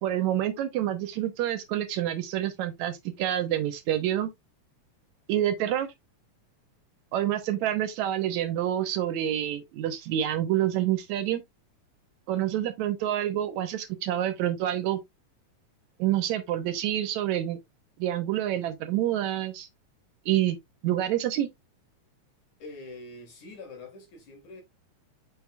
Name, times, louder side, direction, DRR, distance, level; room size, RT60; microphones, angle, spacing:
voice 1, 0.0-4.3 5.3-5.9 7.1-11.4 12.3-15.0 16.0-17.6 18.0-19.7 20.3-20.6 20.8-21.5, right 12 dB, 75° right, 2.0 m, -27 dB
voice 2, 22.6-24.6, left 2 dB, 70° left, 4.0 m, -44 dB
7.2 x 6.3 x 2.3 m
omnidirectional pair, 3.6 m